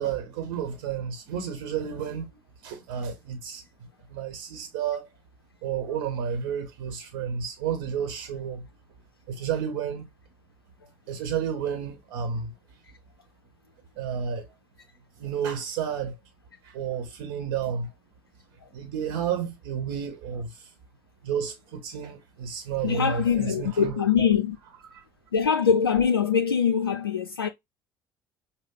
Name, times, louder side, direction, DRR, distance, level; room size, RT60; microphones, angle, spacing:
voice 1, 0.0-3.6 4.1-5.1 5.6-8.6 9.3-10.1 11.1-12.5 14.0-14.5 15.2-16.1 16.6-17.9 18.7-20.7 21.2-24.3 24.9-25.0, right 7 dB, 60° right, 1.2 m, -31 dB
voice 2, 22.8-24.6 25.3-27.5, left 7 dB, 85° left, 0.4 m, -23 dB
5.3 x 2.2 x 3.7 m
figure-of-eight pair, 55°, 12 cm